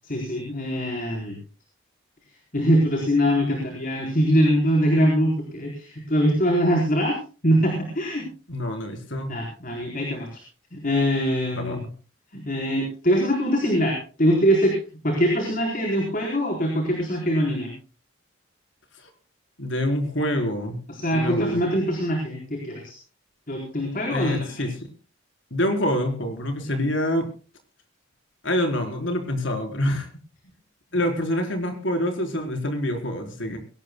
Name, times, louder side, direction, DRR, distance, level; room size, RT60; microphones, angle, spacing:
voice 1, 0.0-1.4 2.5-7.2 7.4-8.3 9.3-10.4 10.7-11.8 12.3-14.8 15.0-17.7 20.9-23.0 23.5-24.7 26.6-26.8, equal, 40° left, 0 dB, 4.2 m, -23 dB
voice 2, 8.5-9.3 11.6-11.8 19.6-20.8 21.1-21.6 24.1-24.7 25.5-27.3 28.4-30.1 30.9-33.6, left 1 dB, 60° left, 4 dB, 4.2 m, -26 dB
22.0 x 18.0 x 2.3 m, 0.36 s
head